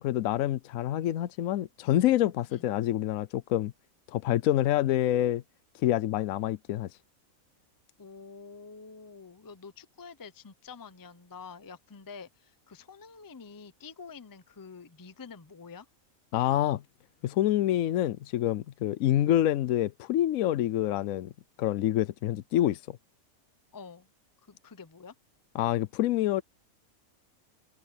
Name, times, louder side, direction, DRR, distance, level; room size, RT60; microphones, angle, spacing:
voice 1, 0.0-3.7 4.1-5.4 5.8-6.9 16.3-16.8 17.2-21.3 21.6-22.8 25.5-26.4, left 13 dB, 75° left, 1.0 m, -27 dB
voice 2, 8.0-15.9 23.7-24.1 24.5-25.1, left 5 dB, 20° left, 0.5 m, -47 dB
omnidirectional pair, 1.5 m